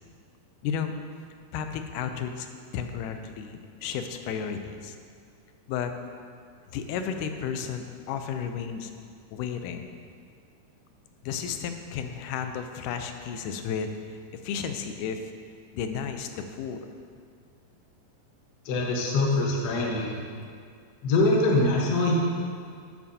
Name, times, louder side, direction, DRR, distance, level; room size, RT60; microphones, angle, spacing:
voice 1, 0.6-0.9 1.5-2.5 2.7-5.0 5.7-5.9 6.7-8.9 9.3-9.9 11.2-15.3 15.7-16.8, left 7 dB, 90° left, 7 dB, 2.2 m, -33 dB
voice 2, 18.6-20.2 21.0-22.1, left 2 dB, 70° left, -2 dB, 0.9 m, -23 dB
12.0 x 7.4 x 2.7 m, 2.1 s
omnidirectional pair, 3.6 m